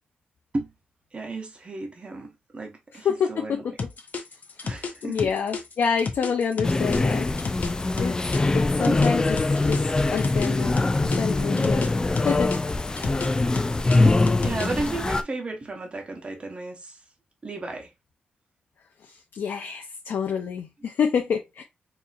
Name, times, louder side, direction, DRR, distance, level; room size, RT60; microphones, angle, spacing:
voice 1, 1.1-3.7 4.6-5.4 8.9-9.0 14.0-17.0 17.4-17.9, right 2 dB, 30° right, 1.0 m, -33 dB
voice 2, 3.0-3.6 4.6-8.1 8.5-9.2 9.6-10.9 11.2-11.9 12.2-12.9 19.0-21.6, left 6 dB, 85° left, 0.6 m, -28 dB
sound 1, 3.8-8.4 8.8-11.9 12.2-14.9, left 4 dB, 50° left, 0.7 m, -32 dB
sound 2, 6.6-15.2, left 2 dB, 20° left, 0.3 m, -23 dB
4.1 x 2.9 x 2.4 m
wide cardioid pair, 125°, 4 cm